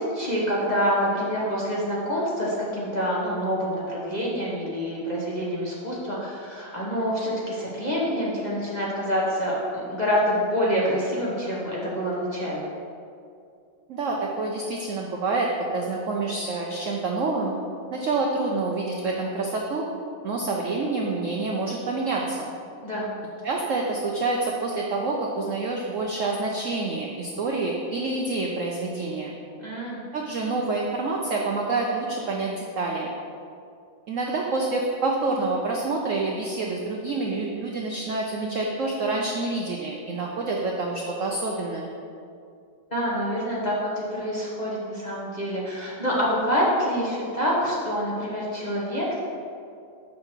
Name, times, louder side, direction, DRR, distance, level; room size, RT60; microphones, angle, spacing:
voice 1, 0.0-12.7 22.8-23.1 29.6-30.0 42.9-49.2, equal, 30° left, -6 dB, 0.8 m, -26 dB
voice 2, 13.9-15.5 15.7-17.5 17.9-19.8 20.2-22.5 23.4-29.4 30.1-33.1 34.1-41.9, right 3 dB, 75° right, -1 dB, 0.7 m, -27 dB
6.4 x 5.8 x 4.5 m, 2.4 s
omnidirectional pair, 2.1 m